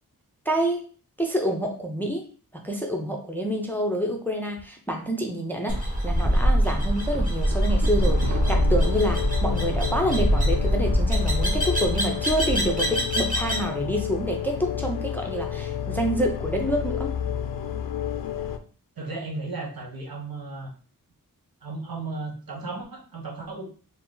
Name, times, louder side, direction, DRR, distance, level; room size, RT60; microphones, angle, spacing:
voice 1, 0.5-0.8 1.2-2.3 2.5-17.1, equal, 5° left, 1 dB, 0.5 m, -27 dB
sound 1, 4.5-4.6 5.0-5.1 5.7-5.9 6.4-10.2 10.5-11.0, right 5 dB, 55° right, 0.4 m, -38 dB
sound 2, 5.7-13.7, equal, 20° right, 1.2 m, -24 dB
sound 3, 8.0-18.6, left 8 dB, 65° left, 0.5 m, -30 dB
voice 2, 19.0-20.7 21.6-23.7, right 3 dB, 70° right, -1 dB, 1.2 m, -35 dB
4.5 x 2.0 x 3.8 m, 0.40 s
wide cardioid pair, 110°, 36 cm